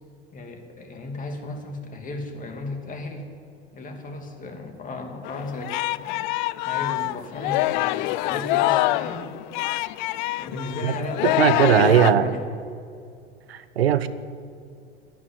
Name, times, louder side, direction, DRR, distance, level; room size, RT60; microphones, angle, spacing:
voice 1, 0.3-3.3 3.7-6.2 6.7-9.3 10.3-12.4, left 2 dB, 25° left, 3 dB, 2.5 m, -35 dB
Singing, 5.2-12.1, left 17 dB, 50° left, 0.5 m, -25 dB
voice 2, 11.2-12.3 13.5-14.1, right 9 dB, 75° right, 14 dB, 0.8 m, -19 dB
11.0 x 10.0 x 9.7 m, 2.4 s
figure-of-eight pair, 85°, 31 cm